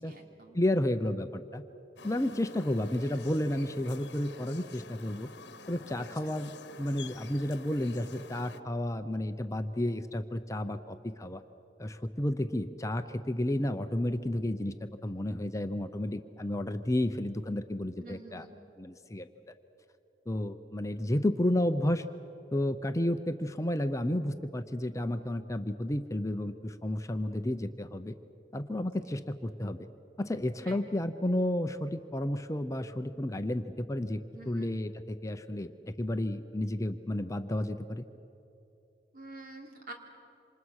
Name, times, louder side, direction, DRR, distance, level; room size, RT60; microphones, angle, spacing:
voice 1, 0.0-0.6 5.9-6.0 18.0-18.5 29.0-29.1 30.6-30.8 34.3-34.7 39.1-39.9, right 2 dB, 55° right, 2 dB, 3.3 m, -47 dB
voice 2, 0.5-1.6 2.0-5.3 5.7-6.5 6.8-11.4 11.8-14.7 15.0-18.5 18.8-19.3 20.3-22.1 22.5-28.1 28.5-29.9 30.2-38.0, left 1 dB, 20° left, 8 dB, 0.7 m, -32 dB
sound 1, 2.0-8.6, left 4 dB, 80° left, 1.1 m, -49 dB
27.5 x 26.5 x 6.4 m, 3.0 s
head